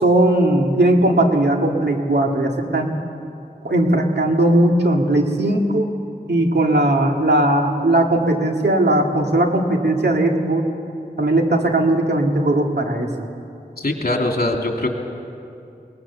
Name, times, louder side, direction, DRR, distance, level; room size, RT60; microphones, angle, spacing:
voice 1, 0.0-3.0 3.6-5.9 6.3-10.6 11.2-13.1, right 1 dB, 85° right, 2 dB, 2.0 m, -18 dB
voice 2, 13.8-14.9, left 2 dB, 65° left, 2 dB, 2.6 m, -22 dB
22.0 x 19.5 x 7.2 m, 2.6 s
wide cardioid pair, 45°, 17 cm